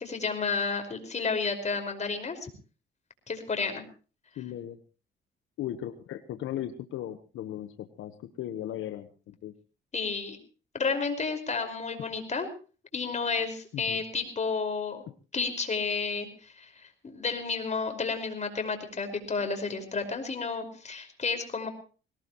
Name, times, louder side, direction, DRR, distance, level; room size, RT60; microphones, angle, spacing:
voice 1, 0.0-2.5 3.3-3.8 9.9-10.4 10.7-12.5 12.9-15.0 15.3-21.7, left 4 dB, 35° left, 6 dB, 5.3 m, -31 dB
voice 2, 4.4-4.8 5.6-9.5 13.7-14.0, left 12 dB, 80° left, 8 dB, 1.3 m, -37 dB
22.0 x 18.0 x 3.1 m, 0.37 s
cardioid pair, 90°, 20 cm